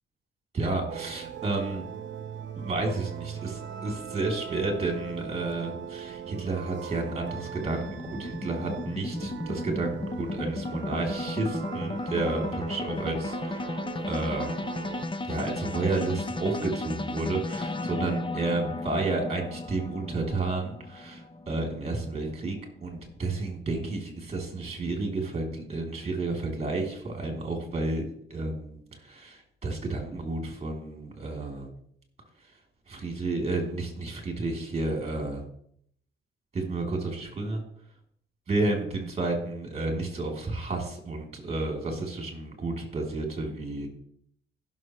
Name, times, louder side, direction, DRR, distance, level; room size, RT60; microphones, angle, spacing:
voice 1, 0.5-1.8 2.5-13.8 14.1-14.5 15.2-28.0 28.3-31.7 32.9-35.4 36.5-37.6 38.5-43.9, right 2 dB, 30° right, 2 dB, 3.4 m, -31 dB
sound 1, 0.9-15.1, right 8 dB, 65° right, 1.0 m, -40 dB
sound 2, 6.2-22.6, left 2 dB, 25° left, 0.9 m, -35 dB
16.0 x 6.6 x 3.3 m, 0.67 s
cardioid pair, 90°, 20 cm